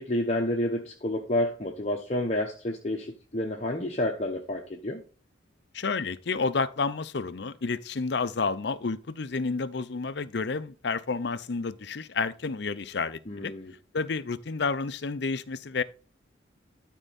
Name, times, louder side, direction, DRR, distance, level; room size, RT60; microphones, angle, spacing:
voice 1, 0.0-5.0 13.3-13.7, left 1 dB, 35° left, 0.9 m, -29 dB
voice 2, 5.7-13.5 13.9-15.8, left 4 dB, 60° left, 0.6 m, -30 dB
12.5 x 4.6 x 4.1 m
head